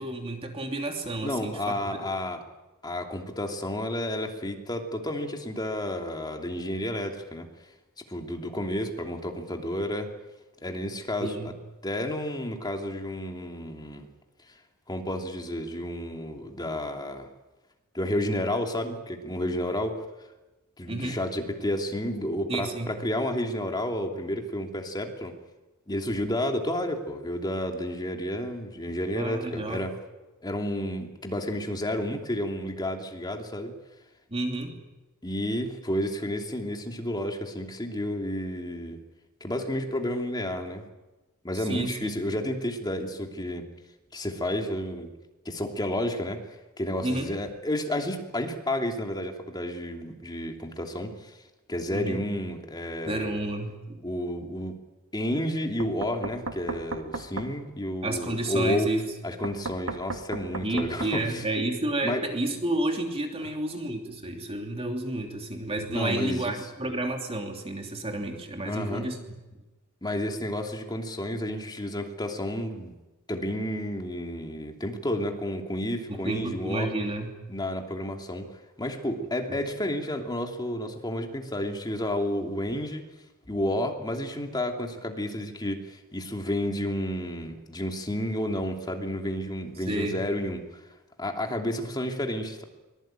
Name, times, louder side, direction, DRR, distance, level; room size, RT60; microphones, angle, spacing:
voice 1, 0.0-2.0 11.2-11.6 20.9-21.2 22.5-22.9 29.2-29.8 34.3-34.7 41.5-42.1 47.0-47.3 51.9-52.2 53.1-54.0 58.0-59.1 60.6-69.2 76.1-77.3 79.5-79.6 89.9-90.2, right 1 dB, 25° right, 3 dB, 3.1 m, -31 dB
voice 2, 1.2-2.4 2.8-7.5 8.1-10.1 10.6-11.5 11.8-14.1 14.9-17.3 17.9-20.0 20.8-25.4 25.9-29.9 30.4-33.7 35.2-39.0 39.4-40.8 41.4-43.7 44.1-45.1 45.4-46.4 46.8-51.3 51.7-53.4 54.0-54.8 55.1-58.9 59.2-61.4 62.0-62.2 65.9-66.6 68.6-69.1 70.0-72.9 73.3-76.9 77.5-78.5 78.8-83.0 83.5-90.8 91.2-92.6, left 1 dB, 20° left, 3 dB, 2.9 m, -31 dB
Knock, 55.8-57.5 59.4-61.1, right 3 dB, 75° right, 2.1 m, -35 dB
24.5 x 20.0 x 9.0 m, 1.1 s
head